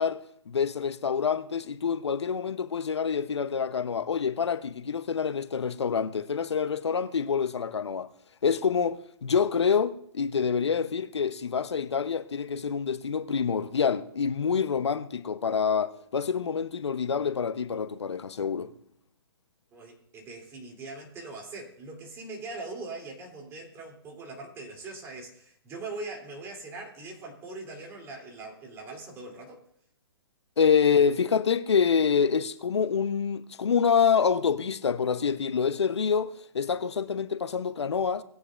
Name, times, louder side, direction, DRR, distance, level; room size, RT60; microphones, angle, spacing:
voice 1, 0.0-8.1 8.4-18.7 30.6-38.2, left 6 dB, 85° left, 0.8 m, -26 dB
voice 2, 19.7-29.6, right 3 dB, 20° right, 3.0 m, -41 dB
20.0 x 9.5 x 2.5 m
hypercardioid pair, 145°, 14 cm